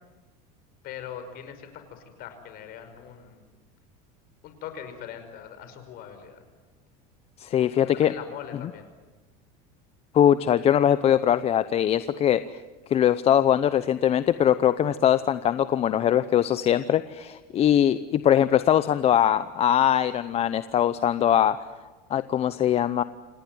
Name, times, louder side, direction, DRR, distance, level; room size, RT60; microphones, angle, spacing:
voice 1, 0.8-3.4 4.4-6.4 7.5-8.9, left 8 dB, 50° left, 9 dB, 5.3 m, -41 dB
voice 2, 7.4-8.1 10.1-12.4 12.9-21.6 22.1-23.0, left 10 dB, 35° left, 14 dB, 0.7 m, -21 dB
27.5 x 18.0 x 9.3 m, 1.2 s
supercardioid pair, 135°, 19 cm